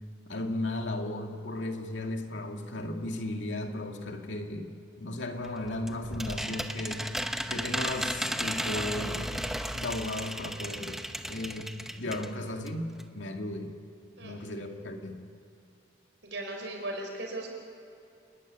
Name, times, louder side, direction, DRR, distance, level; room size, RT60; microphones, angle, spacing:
voice 1, 0.3-7.0 7.5-9.4 9.7-11.7 12.0-13.7 14.2-15.2, left 1 dB, 80° left, 3 dB, 2.3 m, -35 dB
sound 1, 5.4-12.3 12.7-12.8 13.0-13.1, equal, ahead, 0.8 m, -35 dB
voice 2, 16.2-17.5, right 1 dB, 75° right, 2 dB, 5.2 m, -37 dB
29.5 x 12.5 x 10.0 m, 2.6 s
head